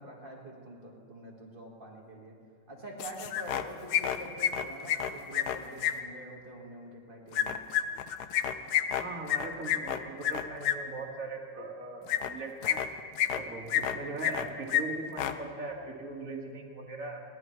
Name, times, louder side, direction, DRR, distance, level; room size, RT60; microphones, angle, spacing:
voice 1, 0.0-2.4 2.7-7.7, right 1 dB, 30° right, -1 dB, 2.1 m, -46 dB
sound 1, 3.0-3.6 3.9-5.9 7.3-10.7 12.1-12.3 12.6-13.4 13.7-14.4 14.7-14.8 15.1-15.3, left 10 dB, 70° left, 1.1 m, -29 dB
voice 2, 9.0-12.8 13.3-17.2, right 3 dB, 45° right, -1 dB, 2.1 m, -40 dB
29.0 x 11.0 x 3.2 m, 2.2 s
omnidirectional pair, 2.0 m